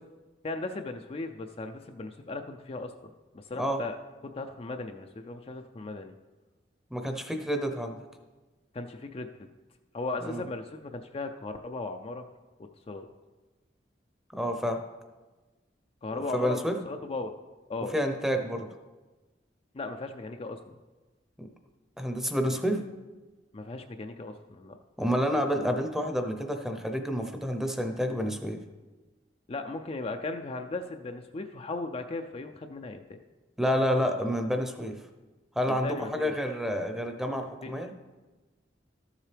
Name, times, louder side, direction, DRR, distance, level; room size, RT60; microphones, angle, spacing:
voice 1, 0.4-2.9 3.3-4.0 4.2-6.1 8.7-9.3 9.9-12.2 12.9-13.1 16.0-16.6 16.9-17.3 17.7-17.9 19.7-20.6 23.5-24.8 29.5-33.2 33.6-33.8 35.8-36.3 37.6-37.7, left 3 dB, 35° left, 6 dB, 0.4 m, -37 dB
voice 2, 6.9-8.0 10.2-10.4 14.3-14.8 16.3-16.8 17.9-18.7 21.4-21.5 22.0-22.8 25.0-28.6 33.6-35.0 35.5-37.9, equal, 5° right, 5 dB, 0.7 m, -29 dB
13.0 x 7.4 x 3.4 m, 1.2 s
head